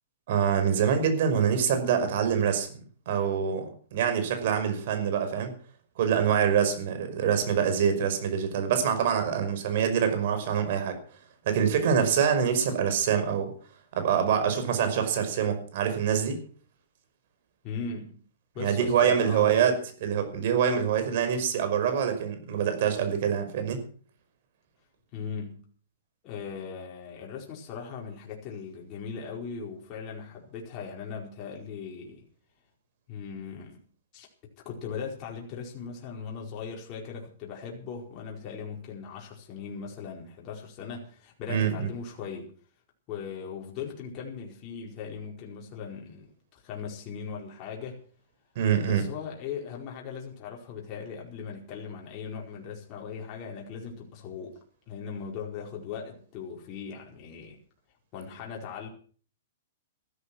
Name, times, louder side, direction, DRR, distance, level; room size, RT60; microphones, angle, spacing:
voice 1, 0.3-2.7 3.1-5.5 6.0-11.0 11.5-13.5 14.0-16.4 18.6-23.8 41.5-41.9 48.6-49.0, right 7 dB, 55° right, 7 dB, 5.4 m, -25 dB
voice 2, 17.6-18.2 18.5-19.7 25.1-25.7 26.2-32.3 33.1-33.8 34.1-34.3 34.6-42.5 43.1-48.0 48.9-54.6 54.9-57.6 58.1-58.9, left 6 dB, 35° left, -2 dB, 4.7 m, -39 dB
15.0 x 13.0 x 6.2 m, 0.44 s
hypercardioid pair, 145°, 0 cm